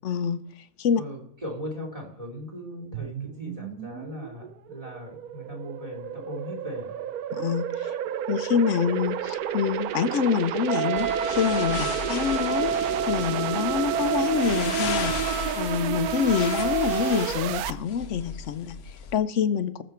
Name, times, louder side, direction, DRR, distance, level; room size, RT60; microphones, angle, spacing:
voice 1, 0.0-1.0 7.3-8.0 8.3-19.8, left 7 dB, 60° left, 13 dB, 0.9 m, -27 dB
voice 2, 1.0-7.0, equal, 25° right, 3 dB, 3.0 m, -38 dB
sound 1, 2.9-17.7, right 10 dB, 90° right, 1.1 m, -31 dB
Wind instrument woodwind instrument, 10.7-17.3, right 6 dB, 50° right, 1.6 m, -30 dB
sound 2, 11.0-19.2, left 6 dB, 85° left, 1.4 m, -36 dB
20.0 x 6.7 x 4.5 m, 0.77 s
omnidirectional pair, 1.5 m